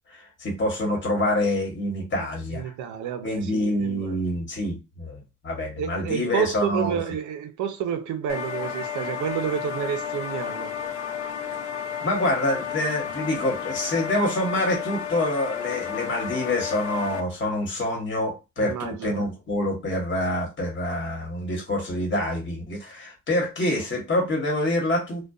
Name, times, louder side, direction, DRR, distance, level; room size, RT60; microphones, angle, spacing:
voice 1, 0.1-2.7 3.2-7.0 12.0-25.3, left 1 dB, 40° left, 1.1 m, -26 dB
voice 2, 2.5-4.2 5.8-10.7 18.6-19.3, right 8 dB, 75° right, 0.5 m, -30 dB
sound 1, 8.3-17.2, left 8 dB, 70° left, 0.5 m, -32 dB
2.5 x 2.2 x 2.3 m
cardioid pair, 90°, 30 cm